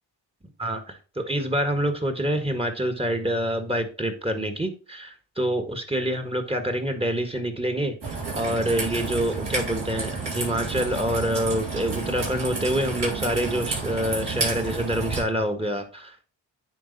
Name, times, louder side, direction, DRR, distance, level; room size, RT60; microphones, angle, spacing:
voice 1, 0.6-8.0 8.3-16.2, equal, 15° right, 7 dB, 1.6 m, -26 dB
Raindrop / Trickle dribble, 8.0-15.2, right 4 dB, 60° right, 3.8 m, -30 dB
9.3 x 3.5 x 4.2 m, 0.35 s
supercardioid pair, 45°, 44 cm